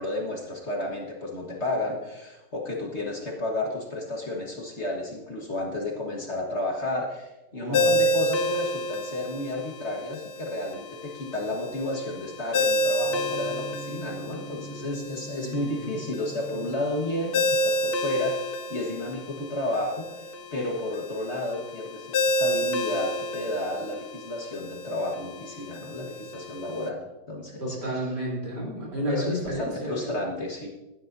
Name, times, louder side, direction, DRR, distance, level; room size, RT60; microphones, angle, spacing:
voice 1, 0.0-28.0 29.1-30.7, left 1 dB, 40° left, -1 dB, 1.7 m, -32 dB
voice 2, 7.5-8.0 15.4-15.9 27.6-30.1, equal, 65° right, -4 dB, 4.3 m, -31 dB
Ringtone, 7.7-26.9, left 1 dB, 65° left, 1.3 m, -30 dB
Gong, 13.0-21.1, right 3 dB, 20° left, 4.2 m, -44 dB
16.0 x 11.5 x 2.7 m, 1.0 s
omnidirectional pair, 2.0 m